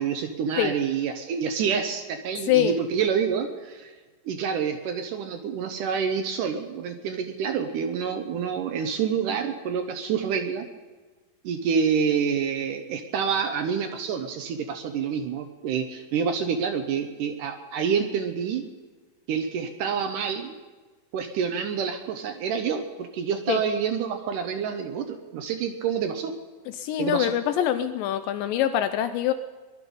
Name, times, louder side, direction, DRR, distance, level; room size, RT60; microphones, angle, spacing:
voice 1, 0.0-3.9 4.3-10.7 11.4-18.6 19.3-20.6 21.1-26.4 27.0-27.3, right 6 dB, 75° right, 6 dB, 2.1 m, -27 dB
voice 2, 26.7-29.3, left 11 dB, 80° left, 10 dB, 2.1 m, -24 dB
21.0 x 11.5 x 5.4 m, 1.3 s
omnidirectional pair, 4.3 m